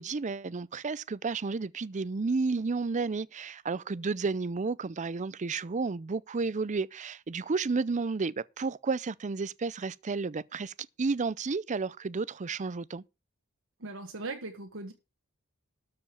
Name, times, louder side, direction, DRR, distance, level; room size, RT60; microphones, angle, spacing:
voice 1, 0.0-13.0, right 4 dB, 35° right, 0.5 m, -32 dB
voice 2, 13.8-14.9, right 3 dB, 60° right, 1.4 m, -39 dB
12.5 x 5.1 x 7.0 m
head